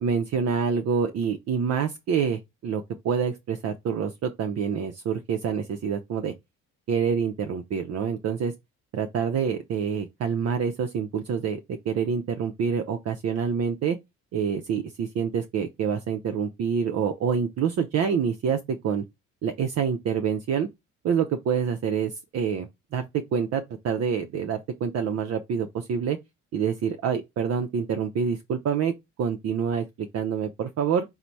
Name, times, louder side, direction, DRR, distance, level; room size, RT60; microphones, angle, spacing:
voice 1, 0.0-6.3 6.9-8.5 8.9-14.0 14.3-19.0 19.4-20.7 21.0-26.2 26.5-28.9 29.2-31.0, right 7 dB, 55° right, 0.5 m, -27 dB
4.0 x 2.1 x 4.4 m
cardioid pair, 90°, 30 cm